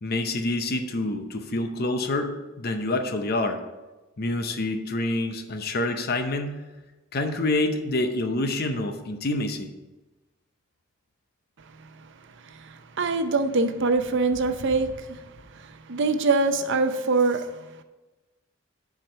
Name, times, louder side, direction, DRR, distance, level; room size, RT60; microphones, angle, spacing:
voice 1, 0.0-3.6 4.2-6.6 7.1-9.7, left 2 dB, 50° left, 0.7 m, -27 dB
voice 2, 12.4-15.2 15.5-17.5, right 3 dB, 60° right, 0.6 m, -24 dB
7.6 x 4.8 x 5.6 m
head